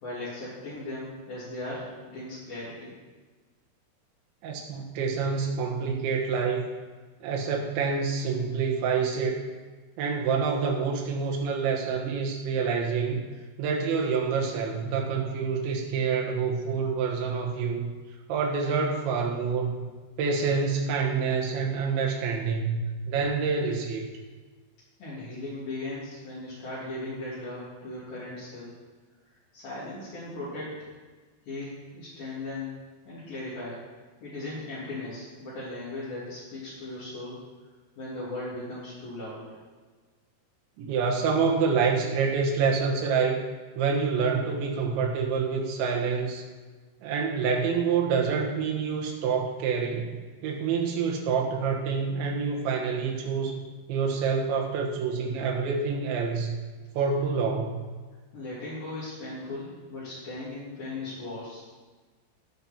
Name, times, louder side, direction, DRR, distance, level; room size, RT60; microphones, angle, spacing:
voice 1, 0.0-2.9 25.0-28.8 29.5-30.9 31.5-33.8 34.2-37.4 38.0-39.5 58.3-61.7, left 2 dB, 55° left, -8 dB, 4.5 m, -37 dB
voice 2, 4.4-6.6 7.2-9.4 10.0-13.2 13.6-17.9 18.3-19.9 20.2-24.1 40.8-43.4 43.8-46.4 47.0-50.1 50.4-53.6 53.9-56.5 57.0-57.8, right 5 dB, 90° right, 0 dB, 3.8 m, -27 dB
17.5 x 6.2 x 4.4 m, 1.4 s
omnidirectional pair, 5.0 m